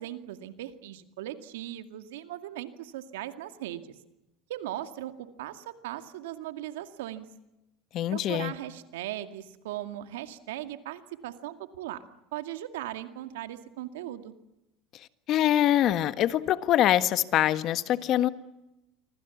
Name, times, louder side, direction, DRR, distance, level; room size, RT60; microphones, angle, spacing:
voice 1, 0.0-3.9 4.5-7.3 8.1-12.0 12.3-14.3, right 13 dB, 85° right, 9 dB, 2.2 m, -38 dB
voice 2, 7.9-8.5 15.3-18.3, left 12 dB, 55° left, 13 dB, 1.5 m, -24 dB
28.0 x 24.5 x 7.2 m, 0.94 s
supercardioid pair, 95°, 0 cm